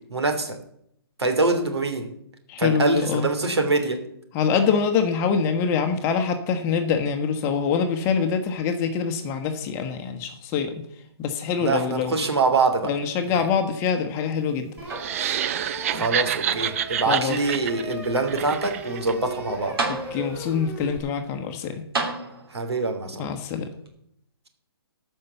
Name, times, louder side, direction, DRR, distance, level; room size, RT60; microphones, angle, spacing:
voice 1, 0.1-0.6 1.2-2.1 2.6-4.0 11.6-12.9 13.3-13.4 15.9-19.8 22.5-23.2, right 3 dB, 85° right, 5 dB, 2.8 m, -24 dB
voice 2, 2.5-3.3 4.3-10.8 11.2-12.2 12.8-14.7 17.1-17.4 20.1-21.8 23.2-23.7, left 6 dB, 20° left, 6 dB, 1.1 m, -24 dB
sound 1, 14.8-21.0, right 1 dB, 10° right, 2.4 m, -38 dB
sound 2, 14.8-15.5 15.9-16.9 17.6-17.7 19.3-19.4 19.8-20.5 21.9-22.8 23.9-24.0, right 3 dB, 65° right, 3.2 m, -32 dB
sound 3, 14.9-19.1, right 10 dB, 35° right, 0.5 m, -28 dB
14.0 x 5.6 x 7.0 m, 0.73 s
hypercardioid pair, 155°, 13 cm